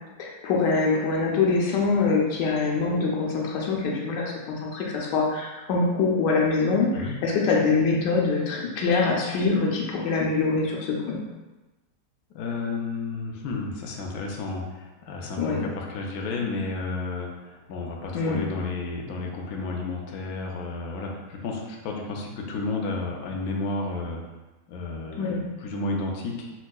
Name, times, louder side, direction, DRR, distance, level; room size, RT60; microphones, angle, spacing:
voice 1, 0.2-11.2 15.4-15.6 18.1-18.4 25.2-25.4, left 4 dB, 90° left, -2 dB, 1.3 m, -24 dB
voice 2, 12.3-24.2 24.7-26.6, left 3 dB, 70° left, 0 dB, 1.0 m, -32 dB
4.4 x 2.3 x 2.2 m, 1.1 s
omnidirectional pair, 1.9 m